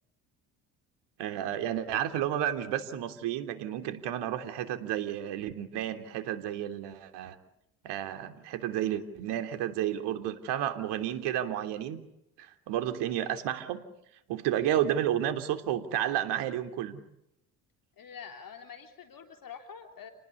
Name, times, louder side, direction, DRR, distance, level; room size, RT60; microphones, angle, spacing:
voice 1, 1.2-7.3 7.8-12.0 12.4-13.8 14.3-17.0, right 11 dB, 70° right, 7 dB, 3.3 m, -31 dB
voice 2, 18.0-20.1, left 7 dB, 50° left, 5 dB, 3.4 m, -46 dB
29.5 x 19.5 x 8.5 m, 0.81 s
hypercardioid pair, 60°, 43 cm